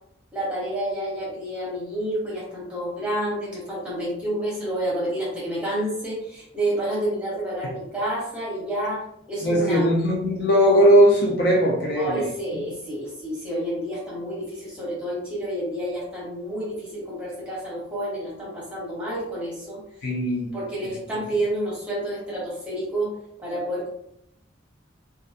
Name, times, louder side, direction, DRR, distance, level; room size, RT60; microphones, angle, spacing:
voice 1, 0.3-9.8 12.0-19.8 20.5-23.1 23.4-23.9, right 1 dB, 5° right, -7 dB, 1.0 m, -29 dB
voice 2, 9.4-12.2 20.0-20.5, equal, 55° left, -1 dB, 0.5 m, -19 dB
2.3 x 2.1 x 2.6 m, 0.76 s
head